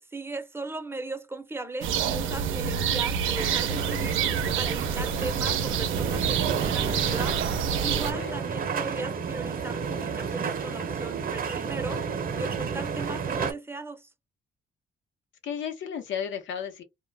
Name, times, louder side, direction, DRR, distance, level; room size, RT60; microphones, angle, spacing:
voice 1, 0.1-4.2 4.6-7.4 7.8-14.1, right 2 dB, 10° right, 0.6 m, -37 dB
sound 1, 1.8-8.1, right 7 dB, 85° right, 0.5 m, -27 dB
sound 2, 3.4-13.5, right 6 dB, 45° right, 0.7 m, -31 dB
voice 2, 8.1-8.5 15.4-16.8, left 8 dB, 70° left, 0.9 m, -34 dB
2.2 x 2.1 x 3.3 m
cardioid pair, 90°, 20 cm